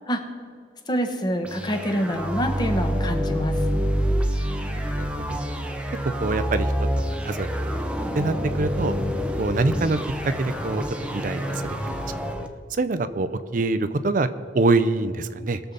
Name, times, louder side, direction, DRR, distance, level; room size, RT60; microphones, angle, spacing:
voice 1, 0.9-3.5, equal, 25° left, 5 dB, 1.1 m, -26 dB
sound 1, 1.4-12.5, equal, 5° right, 0.7 m, -27 dB
voice 2, 4.8-5.4 6.2-6.7 7.2-7.5 8.1-8.9 9.4-10.0 10.3-10.8 11.1-12.0 12.7-14.3 14.5-15.6, right 3 dB, 45° right, 12 dB, 0.5 m, -24 dB
20.5 x 6.9 x 4.0 m, 2.2 s
head